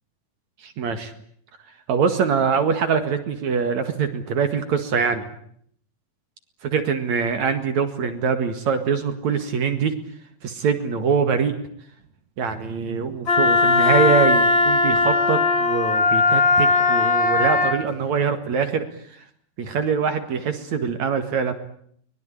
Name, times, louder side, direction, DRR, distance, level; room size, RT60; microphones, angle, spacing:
voice 1, 0.6-1.1 1.9-5.3 6.6-9.9 10.4-11.5 12.4-19.2 19.6-21.5, right 6 dB, 65° right, 8 dB, 3.1 m, -23 dB
Wind instrument woodwind instrument, 13.3-17.8, left 3 dB, 40° left, 3.4 m, -18 dB
24.0 x 21.0 x 9.9 m, 0.65 s
omnidirectional pair, 3.7 m